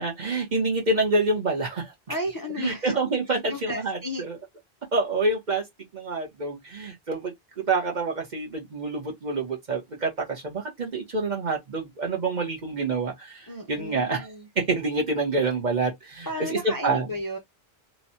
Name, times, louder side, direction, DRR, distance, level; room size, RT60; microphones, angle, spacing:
voice 1, 0.0-1.9 2.6-4.4 4.9-5.6 5.9-14.3 14.6-17.1, right 3 dB, 50° right, 1.1 m, -27 dB
voice 2, 2.1-2.9 3.5-4.2 13.5-14.5 16.2-17.4, left 1 dB, 25° left, 0.6 m, -33 dB
3.1 x 2.2 x 2.7 m
omnidirectional pair, 1.0 m